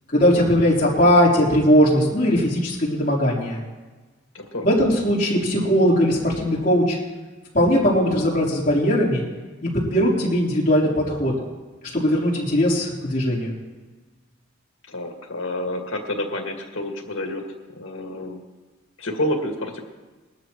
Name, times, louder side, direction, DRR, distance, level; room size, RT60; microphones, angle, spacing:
voice 1, 0.1-3.6 4.6-7.0 7.5-9.2 9.7-11.3 11.9-13.5, equal, 40° left, -5 dB, 3.7 m, -19 dB
voice 2, 4.3-4.9 14.9-17.4 17.7-18.4 19.0-19.8, left 1 dB, 85° left, 2 dB, 2.1 m, -29 dB
21.5 x 13.5 x 3.1 m, 1.3 s
head